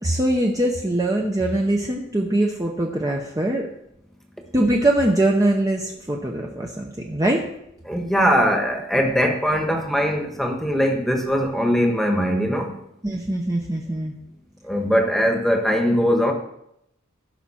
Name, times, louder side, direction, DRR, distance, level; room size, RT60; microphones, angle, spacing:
voice 1, 0.0-3.7 4.5-7.5 8.9-9.0 13.0-14.1, right 1 dB, 15° right, 1 dB, 0.8 m, -22 dB
voice 2, 7.9-12.7 14.6-16.3, equal, ahead, 3 dB, 1.3 m, -21 dB
16.0 x 5.8 x 4.3 m, 0.78 s
head